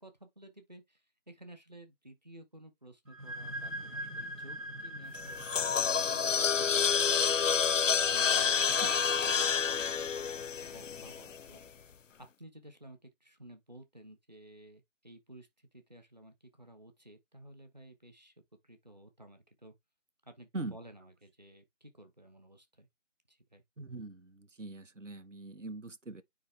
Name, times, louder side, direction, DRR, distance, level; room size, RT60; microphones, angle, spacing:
voice 1, 0.0-8.7 9.2-10.2 10.7-11.6 12.2-18.3 18.6-19.7 20.2-22.9 23.3-23.6, right 1 dB, 35° right, 1.2 m, -54 dB
sound 1, 3.0-10.5, right 1 dB, 85° right, 2.1 m, -45 dB
sound 2, 5.2-11.4, left 6 dB, 70° left, 0.5 m, -29 dB
voice 2, 23.8-26.2, right 2 dB, 70° right, 1.1 m, -42 dB
9.3 x 3.4 x 3.3 m
figure-of-eight pair, 170°, 38 cm